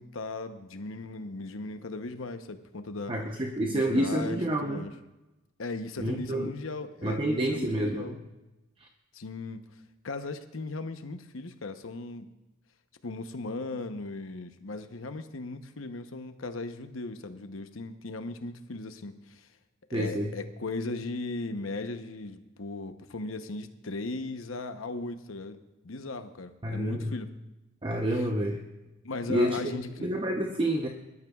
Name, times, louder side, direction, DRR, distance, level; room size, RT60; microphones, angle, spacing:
voice 1, 0.0-3.1 3.7-4.9 5.6-8.2 9.1-9.6 10.0-12.3 13.0-19.5 19.9-27.3 29.0-30.1, left 3 dB, 80° left, 8 dB, 0.9 m, -37 dB
voice 2, 3.1-4.9 6.0-6.5 7.0-8.2 19.9-20.3 26.6-27.1 27.8-28.6 29.3-29.6 30.0-30.9, right 1 dB, 25° right, 2 dB, 0.8 m, -28 dB
22.0 x 12.5 x 2.4 m, 1.0 s
head